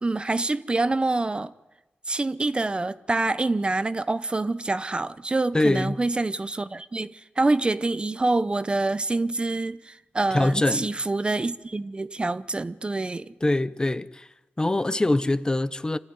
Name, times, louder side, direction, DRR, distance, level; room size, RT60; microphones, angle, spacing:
voice 1, 0.0-1.5 2.1-13.3, right 2 dB, 30° right, 0.7 m, -26 dB
voice 2, 5.5-6.0 10.3-10.9 13.4-14.3 14.6-16.0, left 2 dB, 20° left, 0.7 m, -23 dB
25.5 x 14.0 x 9.5 m
cardioid pair, 80°, 4 cm